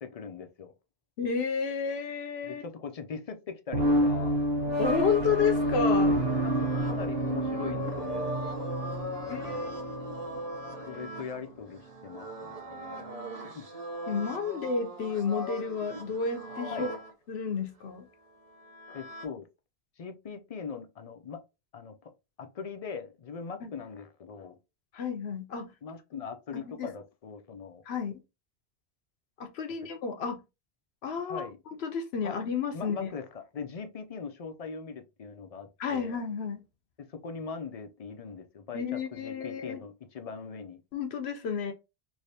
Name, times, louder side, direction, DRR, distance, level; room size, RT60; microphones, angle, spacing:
voice 1, 0.0-0.7 2.5-4.4 6.2-8.4 9.0-9.8 10.9-13.1 13.5-13.7 16.7-16.9 18.9-19.5 20.0-21.4 21.7-22.1 22.4-24.6 25.8-27.8 29.8-29.9 31.3-31.6 32.2-32.4 32.7-36.2 37.0-40.8, left 5 dB, 45° left, 0.5 m, -41 dB
voice 2, 1.2-2.6 4.8-6.2 9.3-10.2 14.1-16.9 17.3-18.1 23.6-23.7 24.9-25.7 26.5-26.9 27.9-28.2 29.4-30.4 31.0-31.5 31.8-33.1 35.8-36.6 38.7-39.8 40.9-41.7, left 6 dB, 90° left, 1.0 m, -31 dB
sound 1, 3.7-11.1, equal, 85° right, 1.2 m, -29 dB
sound 2, 5.4-17.1 18.2-19.3, right 1 dB, 40° right, 0.8 m, -41 dB
3.3 x 2.7 x 2.7 m
omnidirectional pair, 1.0 m